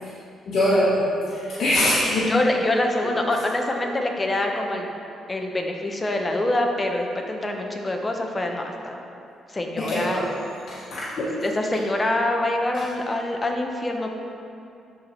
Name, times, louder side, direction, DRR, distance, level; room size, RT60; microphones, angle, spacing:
voice 1, 0.4-2.3 9.7-10.2 10.7-11.3, left 1 dB, 60° left, -8 dB, 1.4 m, -23 dB
voice 2, 2.3-4.9 5.3-9.0 9.5-10.2 11.4-14.2, left 1 dB, 20° left, 2 dB, 1.0 m, -25 dB
11.5 x 4.3 x 4.5 m, 2.5 s
cardioid pair, 90°, 0 cm